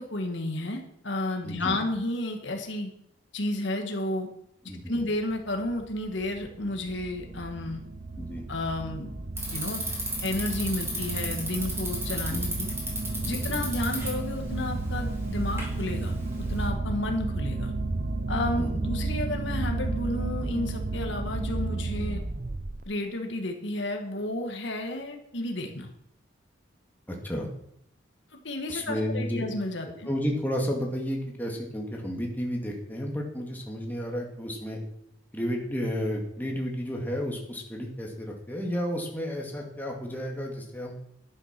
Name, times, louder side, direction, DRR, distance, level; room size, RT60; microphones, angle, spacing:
voice 1, 0.0-2.9 3.3-4.3 4.9-7.8 8.5-9.1 9.5-9.8 10.2-12.7 13.2-17.7 18.3-22.2 22.9-25.9 28.4-30.1, left 1 dB, 65° left, 3 dB, 1.9 m, -32 dB
voice 2, 1.4-1.8 4.7-5.0 8.2-8.4 12.3-12.4 13.4-13.6 18.6-18.9 27.1-27.5 28.7-29.4 30.0-34.8 35.3-40.9, equal, 10° left, -1 dB, 2.3 m, -32 dB
sound 1, 5.3-22.8, right 2 dB, 45° right, 0.8 m, -32 dB
Bicycle, 9.4-16.7, right 1 dB, 15° right, 3.9 m, -36 dB
11.0 x 9.9 x 6.0 m, 0.74 s
head